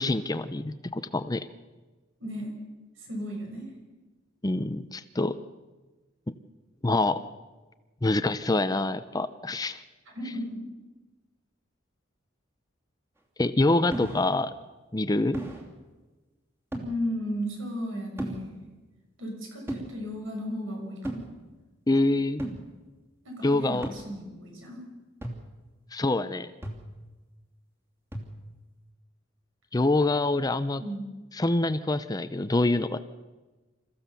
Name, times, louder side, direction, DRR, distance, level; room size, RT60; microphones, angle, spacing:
voice 1, 0.0-1.5 4.4-5.3 6.8-7.2 8.0-9.8 13.4-14.5 14.9-15.4 21.9-22.4 23.4-23.9 25.9-26.5 29.7-30.8 31.3-33.0, left 2 dB, 20° left, 12 dB, 0.6 m, -25 dB
voice 2, 2.2-2.5 3.0-3.7 10.0-10.6 16.8-18.6 19.2-21.3 23.2-24.9 30.8-31.1, equal, 75° right, 1 dB, 6.9 m, -35 dB
sound 1, 13.9-14.4 15.3-15.6 16.7-17.0 18.2-18.5 19.7-19.9 21.0-21.3 22.4-22.7 23.8-24.0 25.2-25.6 26.6-27.0 28.1-28.5, right 1 dB, 10° right, 2.8 m, -35 dB
27.5 x 15.0 x 6.9 m, 1.2 s
head